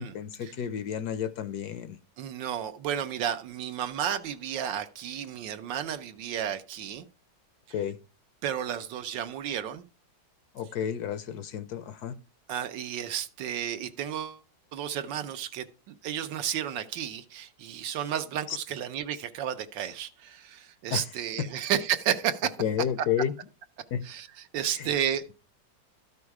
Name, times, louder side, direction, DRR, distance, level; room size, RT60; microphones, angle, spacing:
voice 1, 0.0-2.0 7.7-8.0 10.5-12.1 18.5-18.6 20.9-21.0 22.6-23.3 23.9-24.0 24.8-24.9, left 9 dB, 70° left, 1.1 m, -31 dB
voice 2, 2.2-7.1 8.4-9.8 12.5-14.4 14.7-22.5 24.0-25.3, right 9 dB, 80° right, 1.5 m, -32 dB
12.5 x 5.3 x 4.8 m
omnidirectional pair, 2.0 m